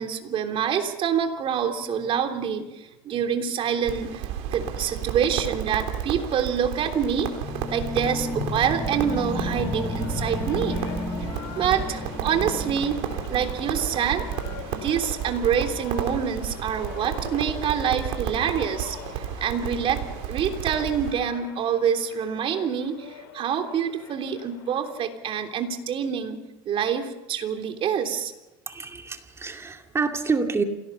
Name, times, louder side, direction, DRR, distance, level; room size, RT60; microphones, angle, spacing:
voice 1, 0.0-4.2 4.5-7.3 7.7-10.8 11.6-13.0 13.3-14.3 14.7-20.0 20.3-26.4 26.6-28.3, right 8 dB, 50° right, 5 dB, 3.3 m, -26 dB
Crackle, 3.8-21.1, right 9 dB, 70° right, 3.6 m, -32 dB
sound 1, 7.4-17.4, left 2 dB, 20° left, 7.3 m, -34 dB
sound 2, 8.8-25.0, left 9 dB, 85° left, 4.2 m, -44 dB
voice 2, 28.7-30.6, right 4 dB, 20° right, 5 dB, 2.3 m, -27 dB
27.0 x 18.0 x 5.7 m, 0.98 s
supercardioid pair, 100°, 12 cm